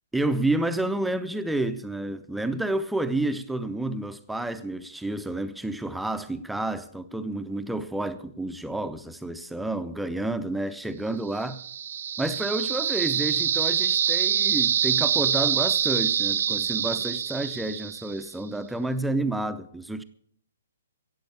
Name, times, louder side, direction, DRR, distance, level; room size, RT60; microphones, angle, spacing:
voice 1, 0.1-11.6 12.2-20.0, right 2 dB, 5° right, 0.6 m, -30 dB
sound 1, 11.4-18.3, right 9 dB, 50° right, 0.5 m, -25 dB
16.0 x 7.8 x 8.3 m
figure-of-eight pair, 125°, 0 cm